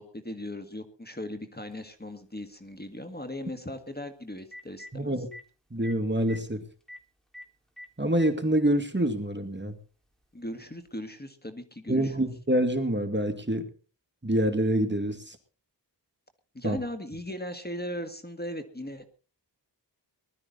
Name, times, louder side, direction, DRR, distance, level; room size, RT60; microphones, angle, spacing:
voice 1, 0.0-5.1 10.3-12.2 16.5-19.0, left 1 dB, 20° left, 8 dB, 2.0 m, -38 dB
Telephone, 1.7-1.8 4.0-4.1 4.4-4.9 5.3-5.4 5.8-5.9 6.2-6.4 6.9-7.0 7.3-7.4 7.8-8.3 9.3-9.4 10.9-11.0, left 1 dB, ahead, 3.3 m, -44 dB
voice 2, 4.9-5.3 5.7-6.6 8.0-9.7 11.9-13.6 14.2-15.4 16.6-16.8, right 1 dB, 25° right, 7 dB, 2.4 m, -26 dB
20.5 x 12.5 x 4.1 m, 0.37 s
wide cardioid pair, 50°, 44 cm